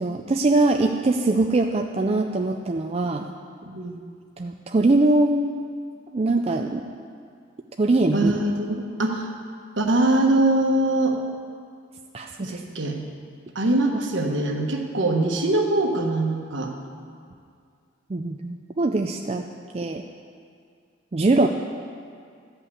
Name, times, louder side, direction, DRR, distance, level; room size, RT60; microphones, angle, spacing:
voice 1, 0.0-3.3 4.4-5.6 6.1-6.8 7.8-8.3 12.1-12.6 13.9-14.0 18.1-19.4 19.7-20.0 21.1-21.5, right 2 dB, 30° right, 3 dB, 0.4 m, -22 dB
voice 2, 3.7-4.0 8.1-9.3 9.8-11.2 12.4-13.0 13.5-16.7, right 2 dB, 65° right, 2 dB, 1.3 m, -22 dB
13.5 x 5.6 x 8.4 m, 2.2 s
head